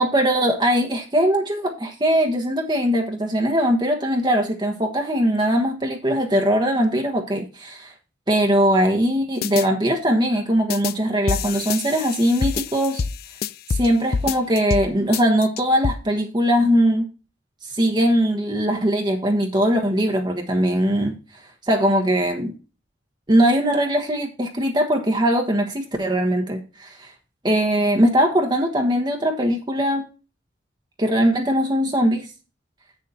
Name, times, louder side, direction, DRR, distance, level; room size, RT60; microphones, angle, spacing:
voice 1, 0.0-7.9 8.3-13.0 13.7-17.1 17.6-22.5 23.3-27.1 27.4-30.1 31.0-32.3, equal, 25° right, 2 dB, 1.2 m, -21 dB
sound 1, 9.4-9.7 10.7-10.9 11.3-13.9 14.1-14.9 15.1-15.9, left 5 dB, 55° left, 0.5 m, -26 dB
8.3 x 6.6 x 4.2 m, 0.33 s
head